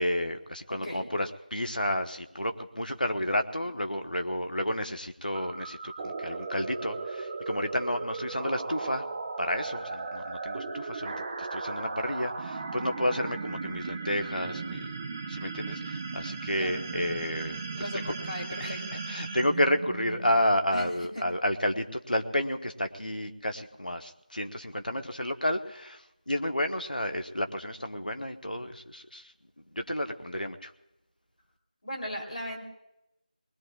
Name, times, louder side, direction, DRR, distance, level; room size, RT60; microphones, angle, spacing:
voice 1, 0.0-9.0 9.4-14.9 15.3-18.1 18.6-18.8 19.1-30.7, left 1 dB, 90° left, 6 dB, 1.1 m, -31 dB
sound 1, 5.3-20.5, right 4 dB, 15° right, 0.4 m, -37 dB
voice 2, 18.3-19.0 20.7-20.8 21.1-21.2 31.8-32.6, equal, 55° left, 0 dB, 3.1 m, -37 dB
23.5 x 20.5 x 2.3 m, 0.89 s
figure-of-eight pair, 170°, 5 cm